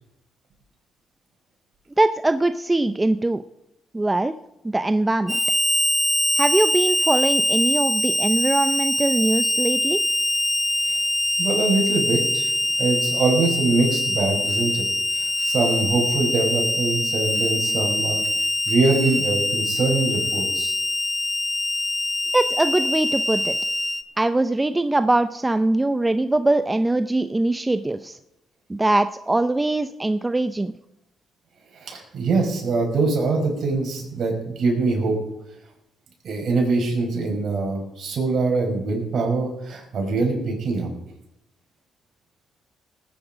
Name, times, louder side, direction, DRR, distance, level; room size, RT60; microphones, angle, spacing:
voice 1, 2.0-3.4 3.9-4.3 4.6-5.4 6.4-10.0 22.3-23.6 24.2-28.2 28.7-30.7, right 2 dB, 15° right, 10 dB, 0.6 m, -22 dB
Harmonica, 5.3-24.0, left 1 dB, 5° left, 1.1 m, -23 dB
voice 2, 11.4-12.5 12.8-14.9 15.1-18.2 18.7-20.7 31.8-35.2 36.2-40.9, right 3 dB, 60° right, 1 dB, 5.4 m, -23 dB
18.5 x 9.8 x 5.0 m, 0.87 s
cardioid pair, 90°, 0 cm